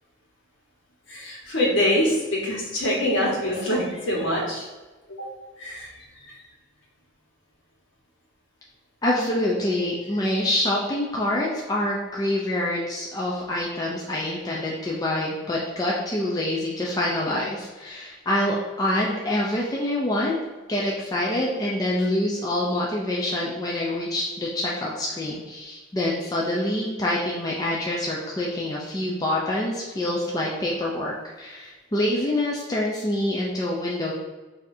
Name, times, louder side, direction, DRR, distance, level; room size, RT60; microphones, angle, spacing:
voice 1, 1.1-4.7 5.1-5.3 5.6-5.9, left 1 dB, 65° left, -4 dB, 1.3 m, -24 dB
voice 2, 9.0-20.4 20.7-34.1, left 1 dB, 20° left, -4 dB, 0.4 m, -26 dB
6.1 x 2.7 x 2.6 m, 1.2 s
head